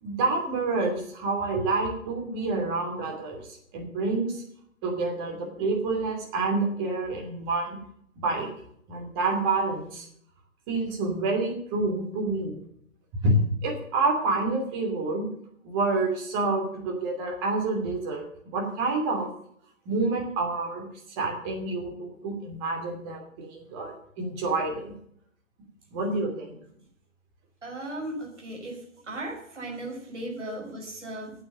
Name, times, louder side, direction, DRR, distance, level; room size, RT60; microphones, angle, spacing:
voice 1, 0.0-3.4 3.7-4.4 4.8-7.8 8.2-8.5 8.9-10.1 10.7-12.6 13.2-13.4 13.6-15.3 15.6-19.3 19.9-20.8 21.2-24.9 25.9-26.6, right 3 dB, 20° right, 1 dB, 2.8 m, -28 dB
voice 2, 27.6-31.3, right 1 dB, 60° right, 0 dB, 5.4 m, -37 dB
8.7 x 8.4 x 8.6 m, 0.67 s
figure-of-eight pair, 135°, 40 cm